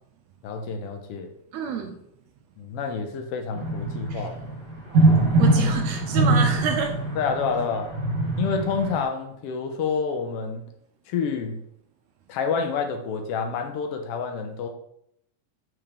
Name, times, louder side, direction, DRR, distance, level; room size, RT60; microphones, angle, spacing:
voice 1, 0.4-1.3 2.6-4.4 7.2-7.9 8.4-10.6 11.1-11.6 12.3-14.7, left 5 dB, 80° left, 5 dB, 1.3 m, -28 dB
voice 2, 1.5-1.9 4.1-4.3 5.4-7.0, right 6 dB, 75° right, 4 dB, 1.7 m, -28 dB
sound 1, 3.5-9.0, right 2 dB, 40° right, 2.0 m, -22 dB
7.6 x 4.6 x 3.4 m, 0.75 s
omnidirectional pair, 3.5 m